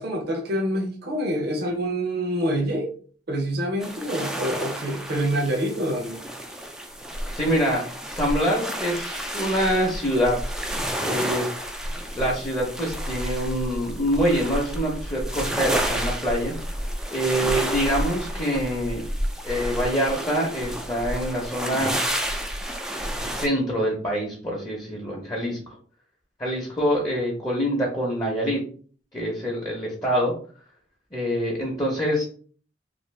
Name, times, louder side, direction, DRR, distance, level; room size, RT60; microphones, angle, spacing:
voice 1, 0.0-2.9 3.3-6.2, equal, 60° right, 0 dB, 0.7 m, -26 dB
sound 1, 3.8-23.5, equal, 5° right, 0.3 m, -30 dB
voice 2, 7.3-10.5 11.0-11.5 12.1-16.5 17.1-19.0 19.4-22.0 23.3-25.6 26.4-28.6 29.1-30.3 31.1-32.2, equal, 20° left, -3 dB, 0.7 m, -25 dB
2.6 x 2.5 x 3.1 m, 0.44 s
head